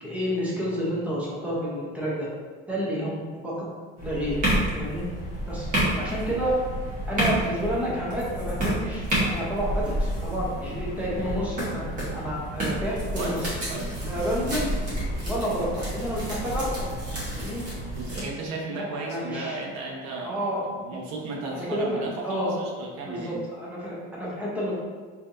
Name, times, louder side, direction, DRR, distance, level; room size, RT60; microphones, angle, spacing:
voice 1, 0.0-2.3 2.7-3.7 4.0-4.4 4.8-5.0 5.5-5.7 6.0-6.6 7.1-11.8 12.1-13.4 14.0-14.7 15.2-16.9 17.3-17.6 18.7-19.6 20.2-20.6 21.5-22.5 23.0-24.8, equal, 5° right, -6 dB, 0.7 m, -30 dB
sound 1, 4.0-18.2, right 1 dB, 25° right, 1.1 m, -29 dB
voice 2, 13.2-14.0 17.9-20.4 20.8-23.3, right 3 dB, 75° right, -1 dB, 0.9 m, -34 dB
4.2 x 2.7 x 2.5 m, 1.5 s
cardioid pair, 160°, 29 cm